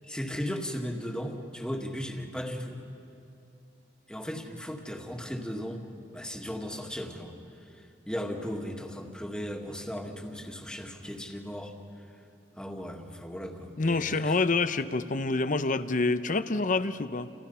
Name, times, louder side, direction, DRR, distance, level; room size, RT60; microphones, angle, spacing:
voice 1, 0.1-2.8 4.1-7.3 8.1-11.7 12.6-14.4, equal, 5° left, 2 dB, 2.1 m, -36 dB
voice 2, 13.8-17.3, left 3 dB, 50° left, 12 dB, 0.9 m, -27 dB
30.0 x 29.0 x 5.7 m, 2.6 s
head